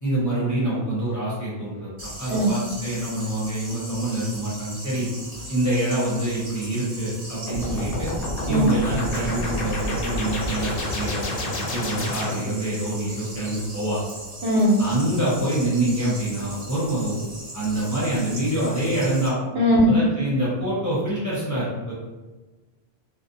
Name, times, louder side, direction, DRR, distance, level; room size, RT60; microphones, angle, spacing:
voice 1, 0.0-1.9 2.2-5.1 5.5-8.1 8.5-14.0 14.8-17.3 17.5-19.4 19.9-21.9, right 1 dB, 20° left, -9 dB, 0.6 m, -26 dB
sound 1, 2.0-19.3, right 1 dB, 40° right, 1.0 m, -39 dB
sound 2, 7.5-12.7, left 1 dB, 65° left, 0.7 m, -29 dB
voice 2, 14.4-14.8 19.6-19.9, equal, 75° right, -4 dB, 0.9 m, -18 dB
2.6 x 2.0 x 2.5 m, 1.2 s
omnidirectional pair, 1.1 m